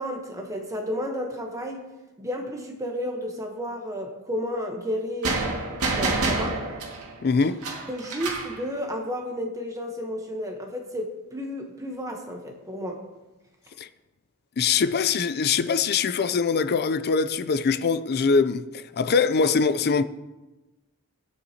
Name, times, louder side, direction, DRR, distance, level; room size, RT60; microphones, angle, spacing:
voice 1, 0.0-1.8 2.2-5.4 5.9-6.6 7.9-13.0, equal, 15° right, 1.0 m, -32 dB
sound 1, 5.2-8.6, right 3 dB, 85° right, 2.0 m, -28 dB
voice 2, 7.2-7.6 13.8-13.9 14.6-20.0, left 5 dB, 45° left, 0.4 m, -23 dB
16.5 x 9.5 x 2.9 m
head